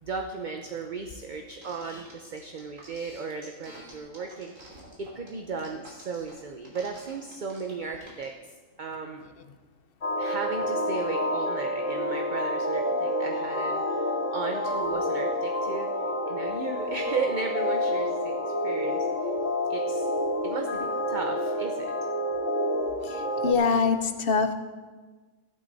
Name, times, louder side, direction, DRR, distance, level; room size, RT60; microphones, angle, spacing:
voice 1, 0.0-8.3 8.8-9.2 10.2-15.9 16.3-19.3 19.7-20.1 20.4-21.9, right 4 dB, 45° right, 3 dB, 0.8 m, -35 dB
sound 1, 1.6-8.3, right 1 dB, 65° right, 3.5 m, -49 dB
sound 2, 10.0-23.5, left 1 dB, 65° left, 2.5 m, -28 dB
voice 2, 23.0-24.6, left 5 dB, 50° left, 8 dB, 0.9 m, -24 dB
14.5 x 11.5 x 4.1 m, 1.3 s
omnidirectional pair, 1.4 m